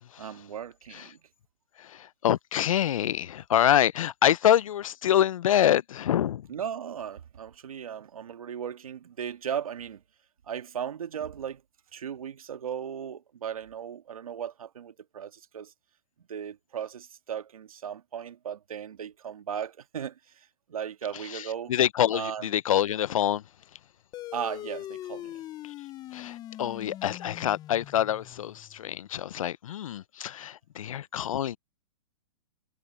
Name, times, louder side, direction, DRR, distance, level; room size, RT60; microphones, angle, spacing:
voice 1, 0.2-1.2 6.5-10.0 10.5-11.6 11.9-15.7 16.3-21.7 22.1-22.5 24.3-25.4, right 8 dB, 80° right, 1.8 m, -37 dB
voice 2, 1.8-6.5 21.3-23.4 26.1-31.6, left 11 dB, 70° left, 0.7 m, -26 dB
sound 1, 24.1-29.0, left 13 dB, 20° left, 0.7 m, -42 dB
hypercardioid pair, 135°, 18 cm